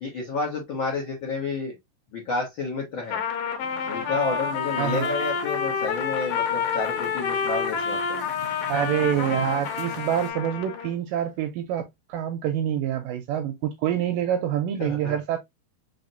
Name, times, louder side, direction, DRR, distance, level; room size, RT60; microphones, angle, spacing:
voice 1, 0.0-1.7 2.1-3.2 3.9-8.2 14.8-15.2, left 3 dB, 85° left, 1.0 m, -30 dB
Trumpet, 3.0-10.9, left 6 dB, 70° left, 2.5 m, -28 dB
sound 1, 3.6-10.3, right 3 dB, 50° right, 0.6 m, -43 dB
voice 2, 4.8-5.1 8.6-15.4, right 10 dB, 85° right, 2.0 m, -26 dB
5.5 x 3.3 x 2.6 m
omnidirectional pair, 4.5 m